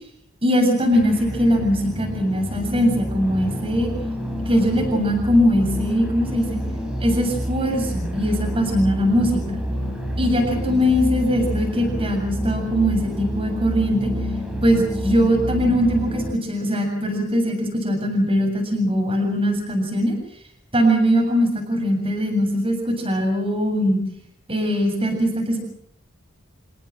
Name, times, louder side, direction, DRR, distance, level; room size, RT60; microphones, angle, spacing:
voice 1, 0.4-3.9 4.5-6.6 7.0-9.6 10.2-14.1 14.6-20.2 20.7-24.0 24.5-25.6, equal, 25° right, 2 dB, 7.6 m, -21 dB
sound 1, 0.9-16.3, equal, 5° right, 4.8 m, -28 dB
29.0 x 17.0 x 7.6 m, 0.65 s
head